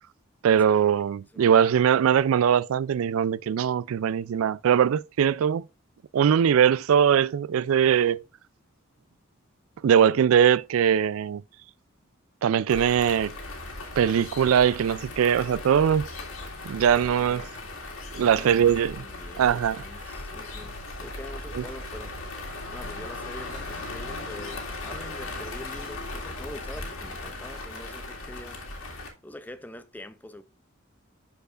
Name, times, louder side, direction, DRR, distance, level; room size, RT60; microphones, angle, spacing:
voice 1, 0.4-5.6 6.1-8.2 9.8-11.4 12.4-13.3 14.0-16.1 16.7-17.4 18.1-19.0 19.4-19.8 21.5-21.6, right 8 dB, 85° right, 0.3 m, -21 dB
sound 1, 12.7-29.1, left 2 dB, 90° left, 2.0 m, -38 dB
voice 2, 16.9-17.5 18.2-22.2 22.7-28.7 29.2-30.4, left 1 dB, 10° left, 0.5 m, -44 dB
11.5 x 4.6 x 2.4 m
head